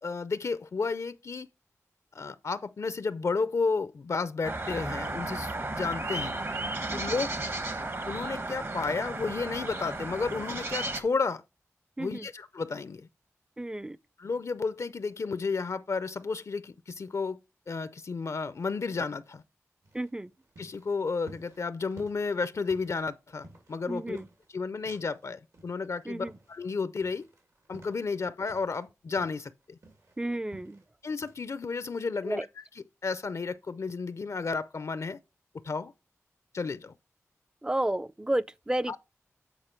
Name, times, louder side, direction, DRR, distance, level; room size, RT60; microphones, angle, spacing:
voice 1, 0.0-1.5 2.1-6.3 6.9-7.3 8.1-11.4 12.0-13.1 14.2-17.4 17.7-19.4 20.6-24.2 24.5-27.3 27.7-29.8 31.0-35.2 35.6-35.9 36.5-36.9 38.9-39.0, left 4 dB, 70° left, 0.4 m, -32 dB
sound 1, 4.4-11.0, right 2 dB, 50° right, 1.0 m, -34 dB
voice 2, 12.0-12.3 13.6-14.0 19.9-20.3 23.9-24.3 26.1-26.3 30.2-30.8 32.2-32.4 37.6-39.0, right 1 dB, 15° right, 0.3 m, -32 dB
sound 2, 19.8-25.3 25.5-28.8 29.2-30.9 31.2-31.4, right 1 dB, 85° right, 2.8 m, -54 dB
8.8 x 4.4 x 4.4 m
wide cardioid pair, 70°, 5 cm